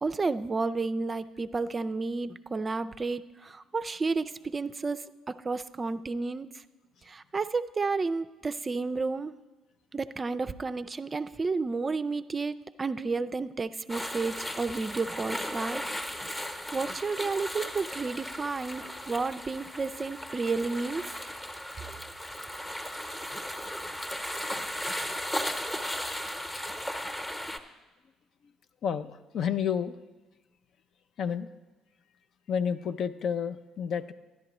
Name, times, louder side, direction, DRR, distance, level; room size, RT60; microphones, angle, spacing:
voice 1, 0.0-6.5 7.1-9.3 9.9-15.8 16.7-21.1, right 4 dB, 30° right, 13 dB, 0.4 m, -31 dB
sound 1, 13.9-27.6, equal, 15° left, 0.9 m, -36 dB
voice 2, 28.8-30.0 31.2-31.5 32.5-34.1, left 7 dB, 60° left, 10 dB, 0.4 m, -30 dB
12.0 x 10.5 x 3.0 m, 1.2 s
hypercardioid pair, 55°, 0 cm